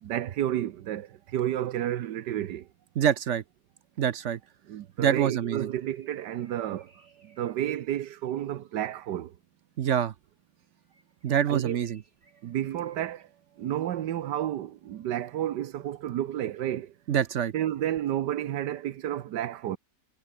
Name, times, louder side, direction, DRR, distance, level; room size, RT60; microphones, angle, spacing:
voice 1, 0.0-2.7 4.7-6.9 7.2-9.3 11.5-11.8 12.4-13.3 13.6-16.9 17.5-19.8, right 11 dB, 80° right, 1.5 m, -31 dB
voice 2, 3.0-3.4 4.0-4.4 5.0-5.7 9.8-10.1 11.2-12.0 17.1-17.5, right 9 dB, 55° right, 0.9 m, -25 dB
Bird, 5.3-9.1 10.7-14.2, right 1 dB, 35° right, 8.5 m, -66 dB
omnidirectional pair, 1.8 m